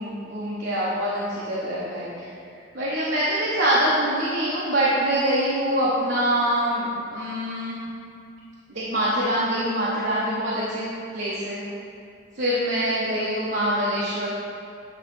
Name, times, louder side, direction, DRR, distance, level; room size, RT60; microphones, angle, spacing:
voice 1, 0.0-2.3 2.7-7.8 8.7-10.9 11.1-11.6 12.4-14.3, right 1 dB, 60° right, -8 dB, 1.1 m, -24 dB
9.3 x 3.3 x 5.3 m, 2.4 s
head